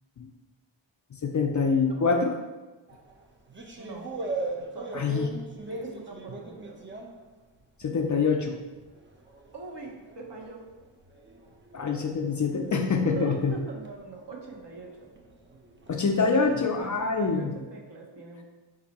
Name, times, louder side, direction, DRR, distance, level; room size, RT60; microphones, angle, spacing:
voice 1, 1.1-2.3 4.9-5.3 7.8-8.6 11.7-13.6 15.9-17.5, left 4 dB, 40° left, 3 dB, 0.4 m, -25 dB
voice 2, 1.9-2.3 3.8-4.1 4.7-5.1 5.7-6.8 9.5-10.7 13.0-15.1 16.8-18.4, right 4 dB, 55° right, -1 dB, 1.0 m, -41 dB
sound 1, 2.9-8.1 8.4-17.3, right 2 dB, 25° right, 0.6 m, -41 dB
4.2 x 2.7 x 4.1 m, 1.2 s
cardioid pair, 60°, 49 cm